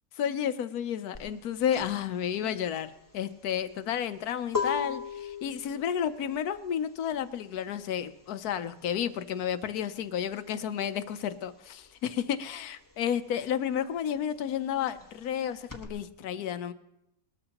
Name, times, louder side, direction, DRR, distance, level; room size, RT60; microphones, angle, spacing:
voice 1, 0.2-16.7, left 9 dB, 80° left, 12 dB, 1.2 m, -31 dB
sound 1, 1.1-11.4 11.7-15.9, left 5 dB, 15° left, 1.2 m, -38 dB
20.5 x 13.0 x 2.9 m, 0.82 s
omnidirectional pair, 1.6 m